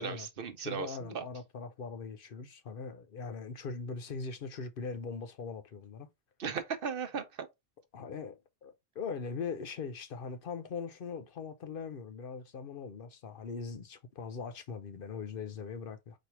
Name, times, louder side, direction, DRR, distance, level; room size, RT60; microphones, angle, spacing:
voice 1, 0.0-1.2 6.4-7.5, right 6 dB, 65° right, 0.9 m, -37 dB
voice 2, 0.6-6.1 7.9-16.2, left 5 dB, 60° left, 0.9 m, -41 dB
4.3 x 2.6 x 4.6 m
omnidirectional pair, 1.1 m